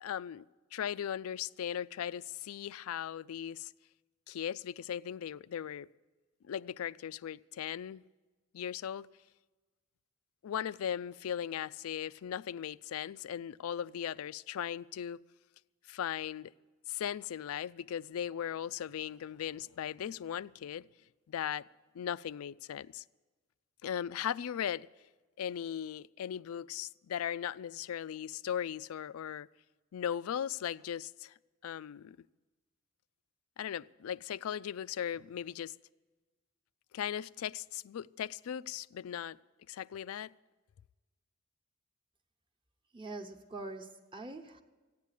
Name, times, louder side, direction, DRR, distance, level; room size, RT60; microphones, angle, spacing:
voice 1, 0.0-0.4 0.7-3.7 4.3-5.9 6.5-8.0 8.5-9.1 10.4-15.2 15.9-16.5 16.9-20.9 21.3-21.7 21.9-23.0 23.8-24.9 25.4-29.5 29.9-31.3 31.6-32.2 33.6-35.7 36.9-39.4 39.7-40.3, left 9 dB, 90° left, 0.4 m, -38 dB
voice 2, 42.9-44.6, right 2 dB, 25° right, 1.0 m, -44 dB
15.0 x 9.6 x 8.3 m
head